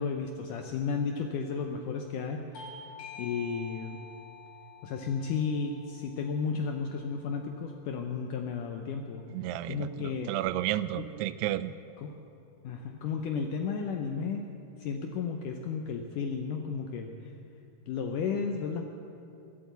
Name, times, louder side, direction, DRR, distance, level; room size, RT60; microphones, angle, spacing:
voice 1, 0.0-2.4 3.2-4.0 4.8-9.2 9.7-10.3 11.0-11.1 12.0-12.1 12.6-14.5 14.8-17.1 17.9-18.9, left 5 dB, 80° left, 4 dB, 1.9 m, -33 dB
Bell / Doorbell, 2.5-7.7, left 3 dB, 60° left, 1.3 m, -49 dB
voice 2, 9.3-11.7, right 14 dB, 90° right, 15 dB, 2.6 m, -32 dB
21.0 x 8.4 x 8.1 m, 2.7 s
omnidirectional pair, 4.6 m